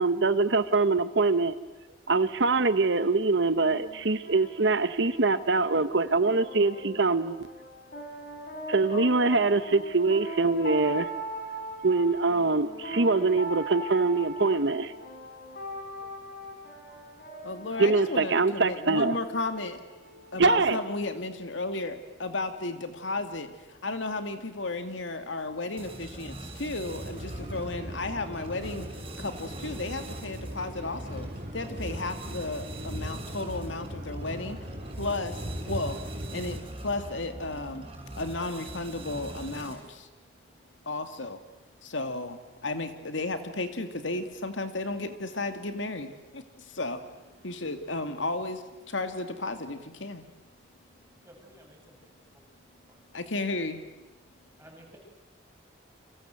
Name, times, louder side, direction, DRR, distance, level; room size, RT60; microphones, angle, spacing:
voice 1, 0.0-1.5 2.1-7.4 8.7-11.1 11.8-14.9 17.3-17.5 17.8-19.1 20.4-20.8, right 3 dB, 70° right, 12 dB, 1.0 m, -24 dB
sound 1, 3.6-21.0, right 1 dB, 50° left, 5.1 m, -40 dB
voice 2, 17.4-19.8 20.3-28.9 29.2-34.7 35.0-36.0 36.3-40.1 40.9-41.4 41.8-47.0 47.4-50.2 53.1-53.8, left 2 dB, 85° left, 8 dB, 2.5 m, -34 dB
sound 2, 25.8-40.0, right 1 dB, 30° right, 7.2 m, -42 dB
sound 3, 26.8-36.6, equal, 45° right, 4.5 m, -40 dB
voice 3, 51.2-52.0 52.9-53.0 54.6-55.0, right 1 dB, 15° right, 0 dB, 7.5 m, -53 dB
30.0 x 25.5 x 7.8 m, 1.1 s
head